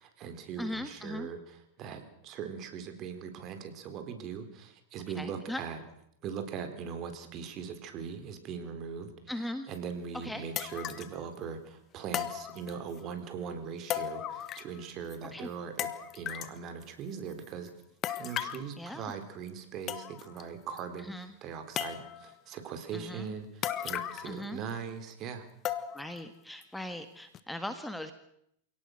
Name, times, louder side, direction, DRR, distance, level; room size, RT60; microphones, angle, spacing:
voice 1, 0.0-5.8 6.2-9.1 9.7-17.7 18.2-25.5, right 6 dB, 40° right, 8 dB, 4.0 m, -40 dB
voice 2, 0.6-1.3 5.1-5.6 9.3-9.7 10.2-10.4 15.3-15.5 18.8-19.1 21.0-21.3 22.9-23.3 24.2-24.6 25.9-28.1, left 1 dB, 5° left, 9 dB, 1.6 m, -39 dB
sound 1, 9.7-9.8 10.6-11.2 12.1-13.0 13.9-14.8 15.1-15.2 15.8-16.6 18.0-18.7 19.5-19.6 19.9-20.4 20.8-20.9 21.8-22.3 23.6-24.4 24.7-24.8 25.7-26.2 26.6-26.7 27.3-27.4, left 10 dB, 35° left, 1.5 m, -36 dB
27.5 x 18.0 x 6.6 m, 0.73 s
hypercardioid pair, 120°, 0 cm